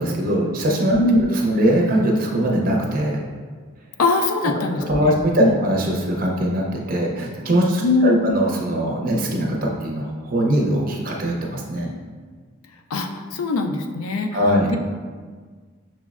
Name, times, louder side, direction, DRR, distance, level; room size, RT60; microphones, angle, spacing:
voice 1, 0.0-3.2 4.7-11.9 14.3-14.7, right 1 dB, 40° right, -1 dB, 0.5 m, -21 dB
voice 2, 1.0-1.3 4.0-5.5 7.8-8.3 12.9-14.4, left 2 dB, 90° left, 5 dB, 0.4 m, -21 dB
6.0 x 2.0 x 2.3 m, 1.5 s
head